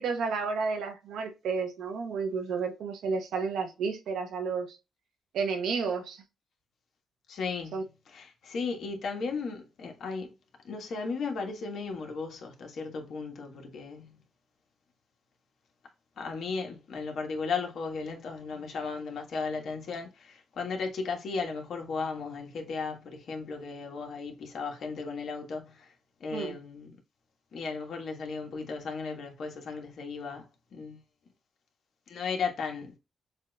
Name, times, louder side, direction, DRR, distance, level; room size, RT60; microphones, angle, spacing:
voice 1, 0.0-4.8 5.3-6.2 7.7-7.8 26.3-26.6, right 5 dB, 85° right, 1.0 m, -31 dB
voice 2, 7.3-10.3 10.6-14.2 16.2-25.9 26.2-27.0 27.5-31.0 32.1-33.0, left 4 dB, 70° left, 1.4 m, -35 dB
7.1 x 2.6 x 2.3 m
cardioid pair, 80°, 0 cm